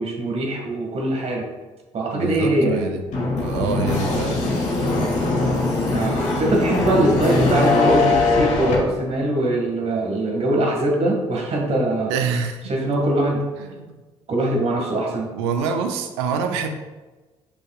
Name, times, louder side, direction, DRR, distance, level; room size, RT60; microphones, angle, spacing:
voice 1, 0.0-1.5 1.9-2.9 4.2-4.4 5.9-12.1 12.7-13.4 14.3-15.3, right 1 dB, 45° right, 0 dB, 1.8 m, -22 dB
voice 2, 2.1-3.0 3.4-4.5 4.8-5.0 12.1-12.9 13.7-13.9 15.3-16.7, right 5 dB, 75° right, 6 dB, 0.6 m, -26 dB
sound 1, 3.1-8.7, left 3 dB, 55° left, 1.9 m, -21 dB
8.7 x 5.4 x 2.4 m, 1.2 s
figure-of-eight pair, 45°, 15 cm